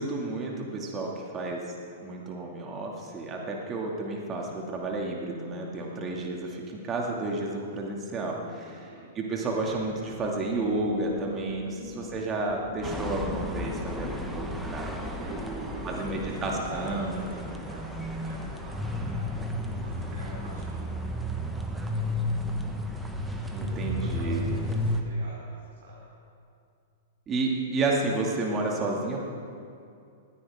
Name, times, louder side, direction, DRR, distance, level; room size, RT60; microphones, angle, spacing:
voice 1, 0.0-1.6 2.0-8.9 9.1-15.0 15.8-17.2 23.5-24.4 27.3-29.2, right 2 dB, 25° right, -1 dB, 2.4 m, -31 dB
voice 2, 8.6-9.1 11.8-12.6 15.0-19.3 19.6-20.9 23.5-26.0, right 2 dB, 55° right, -6 dB, 4.3 m, -45 dB
sound 1, 9.4-14.5, left 5 dB, 60° left, 2.1 m, -43 dB
sound 2, 12.8-25.0, left 1 dB, 5° right, 1.3 m, -33 dB
19.5 x 15.0 x 3.7 m, 2.5 s
figure-of-eight pair, 105°, 0 cm